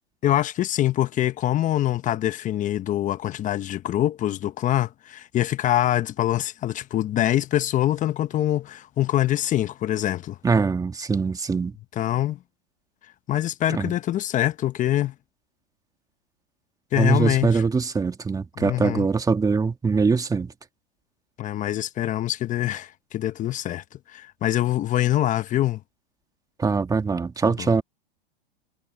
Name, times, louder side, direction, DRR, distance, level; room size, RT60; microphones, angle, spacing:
voice 1, 0.2-10.4 12.0-12.4 13.3-15.1 16.9-17.6 18.6-19.1 21.4-25.8 27.4-27.8, left 13 dB, 25° left, 1.1 m, -24 dB
voice 2, 10.4-11.7 13.7-13.9 17.0-20.5 26.6-27.8, right 4 dB, 10° right, 2.1 m, -23 dB
hypercardioid pair, 125°, 30 cm